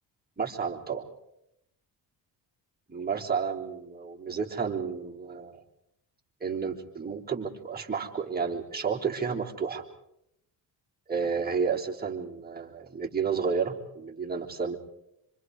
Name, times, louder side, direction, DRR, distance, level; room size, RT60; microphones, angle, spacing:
voice 1, 0.4-1.1 2.9-5.6 6.4-9.8 11.1-14.8, right 6 dB, 20° right, -2 dB, 3.7 m, -31 dB
26.5 x 25.0 x 4.8 m, 0.79 s
cardioid pair, 80°, 42 cm